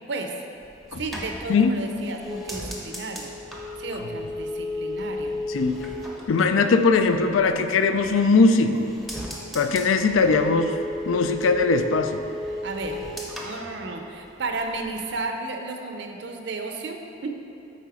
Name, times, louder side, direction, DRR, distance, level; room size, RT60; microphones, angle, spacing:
voice 1, 0.1-0.4 1.0-3.3 3.8-5.4 12.6-13.1 13.4-17.3, right 3 dB, 60° right, 4 dB, 0.6 m, -33 dB
sound 1, 0.6-7.4 7.8-8.5 8.8-14.5 14.7-15.2, left 1 dB, ahead, 0.6 m, -35 dB
voice 2, 6.3-8.9 9.5-10.7 11.1-12.2, left 4 dB, 80° left, 8 dB, 0.4 m, -20 dB
8.4 x 4.1 x 4.8 m, 2.7 s
head